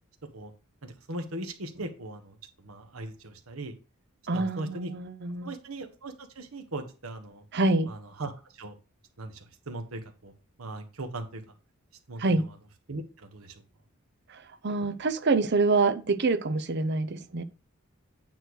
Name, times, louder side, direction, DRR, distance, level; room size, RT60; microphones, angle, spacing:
voice 1, 0.8-3.7 4.3-4.9 5.4-7.4 7.9-8.8 9.2-10.3 10.6-11.4 12.1-12.4 12.9-13.6, right 2 dB, 85° right, 1.3 m, -39 dB
voice 2, 4.3-5.5 7.5-7.9 12.2-12.5 14.3-17.4, right 3 dB, 55° right, 0.7 m, -26 dB
9.1 x 3.2 x 6.3 m
head